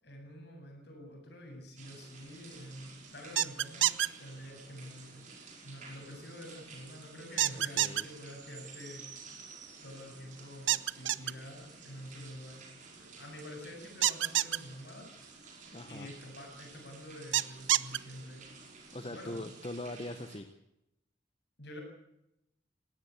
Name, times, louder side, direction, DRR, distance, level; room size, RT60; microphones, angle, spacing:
voice 1, 0.0-9.2 9.8-12.6 12.9-15.4 15.8-18.4 19.0-19.5 21.6-21.8, equal, 55° left, 2 dB, 7.8 m, -48 dB
sound 1, 1.8-20.4, right 4 dB, 40° right, 5.2 m, -52 dB
sound 2, 3.4-4.1 7.4-8.0 10.7-11.3 14.0-14.6 17.3-18.0, right 13 dB, 80° right, 0.7 m, -27 dB
voice 2, 7.7-8.1 15.7-16.1 18.9-20.5, left 1 dB, 30° left, 8 dB, 1.0 m, -41 dB
19.5 x 17.0 x 8.4 m, 0.84 s
head